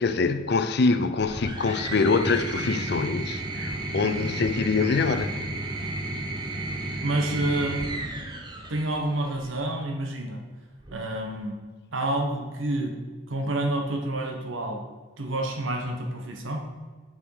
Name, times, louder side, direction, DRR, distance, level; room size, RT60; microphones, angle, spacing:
voice 1, 0.0-5.4, left 4 dB, 55° left, 10 dB, 0.5 m, -24 dB
sound 1, 1.2-9.6 10.8-11.4, right 2 dB, 20° right, 0.8 m, -33 dB
voice 2, 7.0-7.9 8.7-10.4 10.9-11.6 11.9-13.0 13.3-14.8 15.2-16.6, right 1 dB, 80° right, 3 dB, 1.2 m, -28 dB
6.9 x 6.2 x 4.7 m, 1.4 s
head